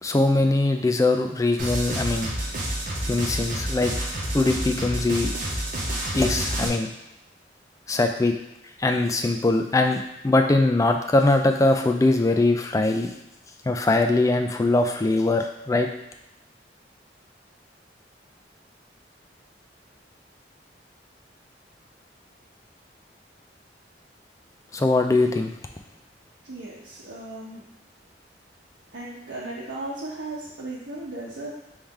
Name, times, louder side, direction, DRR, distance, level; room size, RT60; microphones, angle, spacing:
voice 1, 0.0-2.3 3.0-3.9 4.3-5.3 6.2-6.9 7.9-8.3 8.8-10.0 10.2-13.1 13.7-15.9 24.7-25.5, left 2 dB, 20° left, 5 dB, 0.3 m, -21 dB
sound 1, 1.6-6.7, right 1 dB, 45° right, 0.8 m, -29 dB
voice 2, 26.4-27.6 28.9-31.5, right 2 dB, 85° right, -7 dB, 0.8 m, -36 dB
4.1 x 3.2 x 3.6 m, 0.87 s
head